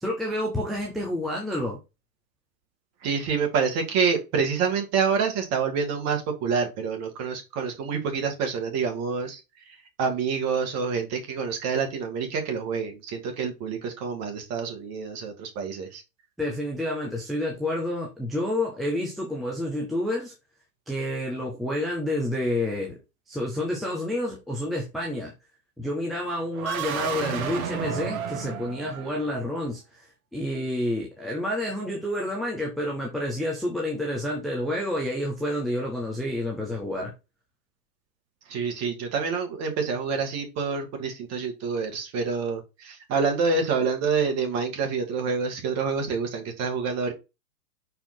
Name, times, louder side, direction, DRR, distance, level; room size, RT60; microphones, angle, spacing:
voice 1, 0.0-1.8 16.4-20.3 20.9-23.0 23.3-25.3 25.8-37.1, left 1 dB, ahead, 0.4 m, -29 dB
voice 2, 3.0-9.4 9.7-16.0 38.5-47.1, right 5 dB, 35° right, 2.3 m, -27 dB
sound 1, 26.5-29.5, right 8 dB, 60° right, 1.4 m, -32 dB
5.7 x 4.6 x 4.2 m
hypercardioid pair, 115°, 48 cm